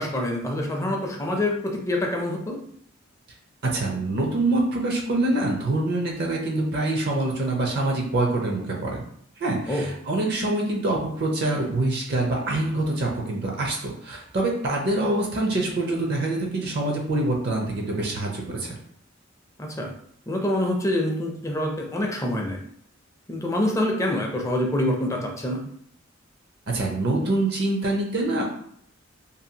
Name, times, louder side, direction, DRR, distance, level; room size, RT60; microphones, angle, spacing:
voice 1, 0.0-2.6 9.7-9.9 19.6-19.9 20.3-22.6 23.3-25.7, left 1 dB, 15° left, 1 dB, 0.4 m, -26 dB
voice 2, 3.6-9.0 9.4-18.8 26.7-28.4, right 2 dB, 55° right, 0 dB, 0.5 m, -25 dB
2.6 x 2.3 x 2.7 m, 0.67 s
head